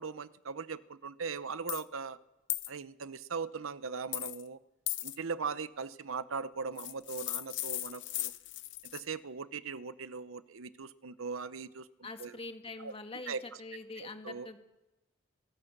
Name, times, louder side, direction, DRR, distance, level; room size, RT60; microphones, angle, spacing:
voice 1, 0.0-2.2 2.7-4.6 5.0-8.3 8.9-11.9 12.2-12.3 12.8-12.9 13.3-13.4 14.2-14.5, right 5 dB, 85° right, 15 dB, 0.8 m, -39 dB
sound 1, 1.7-1.8 2.5-2.7 4.1-4.4 4.9-5.2 6.8-9.0, left 16 dB, 60° left, 0.8 m, -37 dB
voice 2, 12.0-14.6, left 3 dB, 30° left, 6 dB, 1.9 m, -44 dB
27.0 x 18.0 x 6.7 m, 1.0 s
head